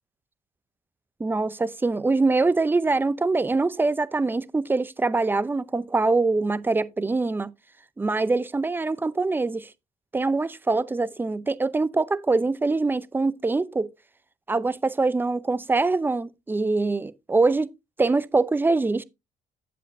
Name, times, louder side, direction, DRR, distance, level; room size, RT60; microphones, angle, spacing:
voice 1, 1.2-7.5 8.0-9.7 10.1-13.9 14.5-17.7 18.0-19.0, right 3 dB, 10° right, 0.5 m, -24 dB
10.0 x 8.0 x 2.6 m
cardioid pair, 110°, 17 cm